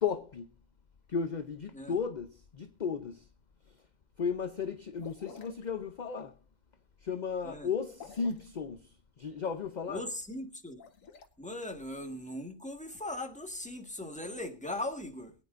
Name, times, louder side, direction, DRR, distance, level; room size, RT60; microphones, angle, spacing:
voice 1, 0.0-0.5 1.1-2.3 2.5-3.2 4.2-6.3 7.0-8.9 9.2-10.0, left 6 dB, 40° left, 0.7 m, -34 dB
sound 1, 5.0-5.7 7.9-8.5 10.6-11.3, left 5 dB, 70° left, 1.6 m, -49 dB
voice 2, 9.9-10.8 11.4-15.3, left 1 dB, 5° left, 1.5 m, -39 dB
23.0 x 9.1 x 2.5 m
omnidirectional pair, 1.4 m